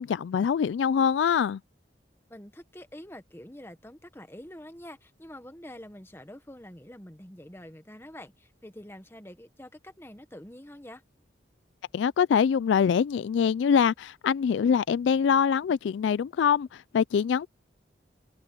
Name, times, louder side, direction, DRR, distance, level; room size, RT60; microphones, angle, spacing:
voice 1, 0.0-1.6 11.9-17.5, left 7 dB, 80° left, 0.3 m, -24 dB
voice 2, 2.3-11.0, left 1 dB, 15° left, 1.2 m, -46 dB
head